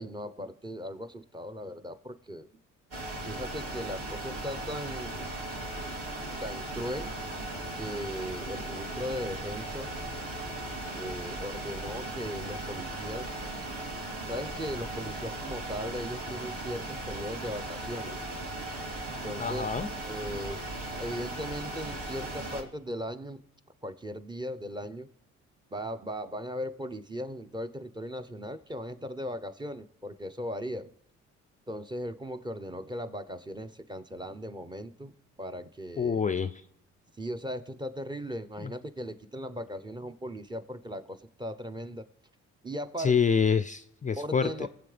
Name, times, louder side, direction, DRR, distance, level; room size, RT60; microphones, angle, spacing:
voice 1, 0.0-2.5 3.2-5.3 6.4-7.1 7.7-9.9 10.9-13.3 14.2-18.2 19.2-19.7 20.1-20.6 21.0-23.4 23.8-25.1 25.7-30.9 31.7-36.2 37.2-42.0 42.6-43.1 44.2-44.7, equal, 15° right, 0.8 m, -38 dB
sound 1, 2.9-22.6, right 2 dB, 50° right, 2.9 m, -37 dB
voice 2, 19.4-19.9 36.0-36.6 38.6-38.7 43.0-44.7, left 6 dB, 25° left, 0.4 m, -27 dB
21.0 x 7.9 x 3.4 m
cardioid pair, 90°, 30 cm